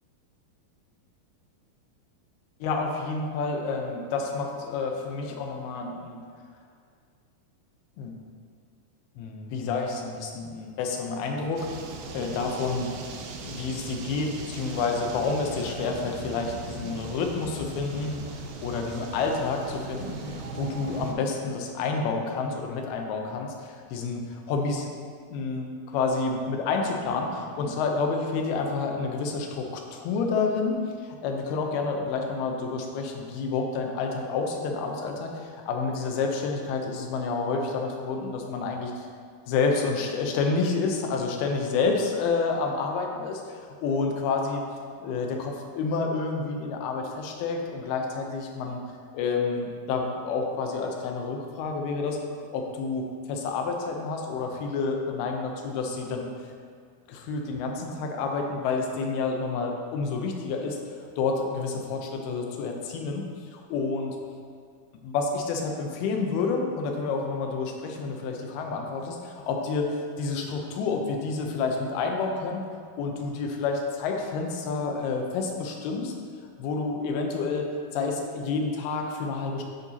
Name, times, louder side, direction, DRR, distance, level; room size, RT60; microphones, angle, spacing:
voice 1, 2.6-6.2 8.0-8.2 9.2-11.7 12.1-12.9 13.5-24.9 25.3-39.1 39.5-44.6 45.0-48.8 49.1-52.2 52.5-56.3 57.1-60.8 61.2-64.2 65.0-72.6 73.0-76.1 76.6-77.7 77.9-79.6, left 4 dB, 80° left, 2 dB, 2.7 m, -29 dB
sound 1, 11.6-21.1, right 3 dB, 80° right, 2.3 m, -38 dB
8.9 x 6.7 x 2.8 m, 2.1 s
omnidirectional pair, 4.5 m